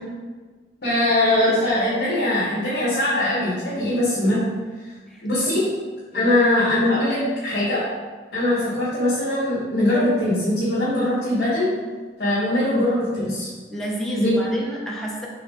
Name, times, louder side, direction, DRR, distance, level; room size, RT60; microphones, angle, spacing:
voice 1, 0.8-4.5 5.2-5.6 6.1-7.8 8.3-11.7 12.2-13.5 14.2-14.3, left 1 dB, 60° left, -9 dB, 1.1 m, -21 dB
voice 2, 5.1-5.5 6.1-6.3 13.7-15.3, right 1 dB, ahead, -4 dB, 0.6 m, -30 dB
3.9 x 3.6 x 3.6 m, 1.4 s
head